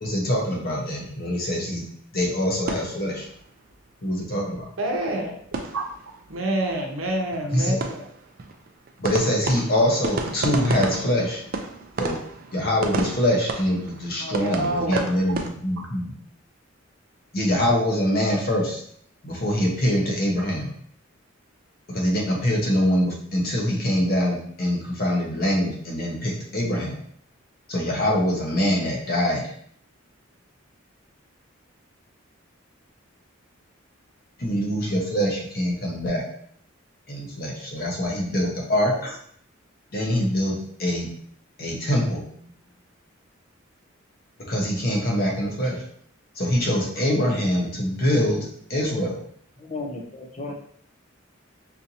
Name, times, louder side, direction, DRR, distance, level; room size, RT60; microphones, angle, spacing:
voice 1, 0.0-1.8 2.1-3.3 4.0-4.7 7.5-7.8 9.0-11.4 12.0-12.2 12.5-16.1 17.3-18.8 19.2-20.7 21.9-27.0 27.7-29.5 34.4-36.2 37.1-39.2 39.9-40.5 40.8-41.1 41.6-42.3 44.5-45.8 46.3-49.2, equal, 45° left, -1 dB, 0.9 m, -24 dB
sound 1, 2.4-3.8 4.1-4.2 4.5-4.6 4.9-6.4 6.6-6.7 7.0-15.5, right 3 dB, 45° right, 0.4 m, -32 dB
voice 2, 4.8-5.4 5.7-5.8 6.3-8.1 14.2-15.0, right 1 dB, 80° right, 1 dB, 0.8 m, -27 dB
voice 3, 49.6-50.5, left 3 dB, 30° left, 2 dB, 0.5 m, -34 dB
4.3 x 2.7 x 2.7 m, 0.62 s
head